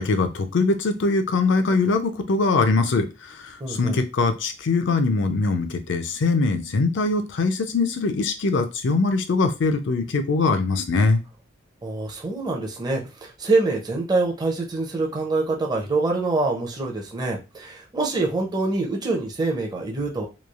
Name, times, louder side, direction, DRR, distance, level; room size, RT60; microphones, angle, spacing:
voice 1, 0.0-3.1 3.7-11.2, left 3 dB, 65° left, 7 dB, 0.5 m, -22 dB
voice 2, 3.6-4.0 11.8-20.3, right 3 dB, 20° right, 0 dB, 0.5 m, -25 dB
3.1 x 2.3 x 2.4 m, 0.28 s
head